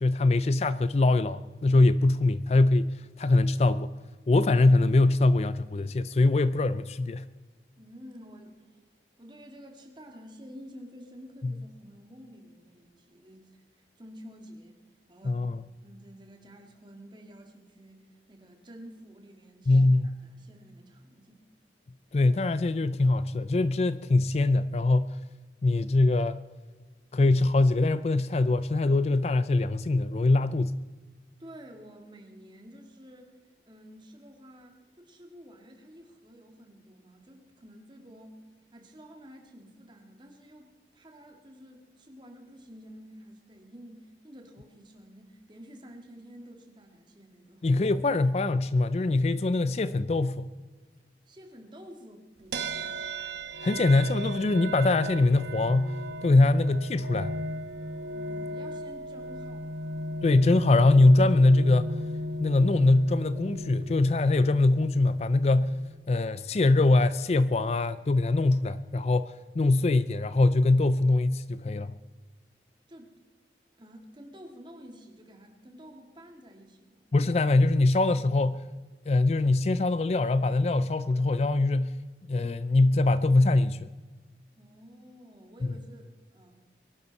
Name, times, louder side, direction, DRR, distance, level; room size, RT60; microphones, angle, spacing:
voice 1, 0.0-3.9 4.3-7.2 11.4-11.5 15.3-15.6 19.7-20.2 22.1-25.2 25.6-26.4 27.1-30.8 47.6-50.5 53.6-57.3 60.2-61.9 62.4-65.8 66.1-71.9 77.1-78.7 79.1-81.9 82.3-83.9, left 2 dB, 35° left, 15 dB, 0.4 m, -23 dB
voice 2, 7.8-8.8 9.2-14.8 15.1-15.4 15.8-21.4 31.4-38.5 38.7-47.7 51.3-53.0 58.1-60.0 72.9-73.2 73.8-77.1 84.6-86.6, equal, 25° right, 3 dB, 2.1 m, -50 dB
sound 1, 52.5-66.0, equal, 80° right, 1.1 m, -36 dB
22.5 x 11.5 x 4.1 m, 1.3 s
head